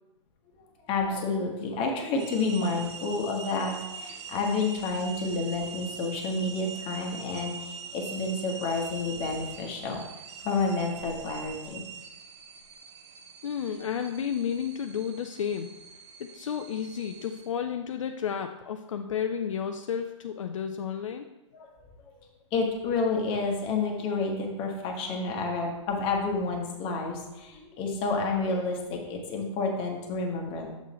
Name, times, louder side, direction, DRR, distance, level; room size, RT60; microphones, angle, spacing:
voice 1, 0.9-10.0 10.4-11.8 21.5-21.7 22.5-30.7, left 3 dB, 35° left, 1 dB, 1.3 m, -30 dB
sound 1, 2.2-17.5, right 5 dB, 65° right, 0.7 m, -43 dB
voice 2, 13.4-15.7 16.2-21.3, left 8 dB, 80° left, 6 dB, 0.4 m, -32 dB
7.2 x 3.7 x 4.1 m, 1.0 s
hypercardioid pair, 120°, 16 cm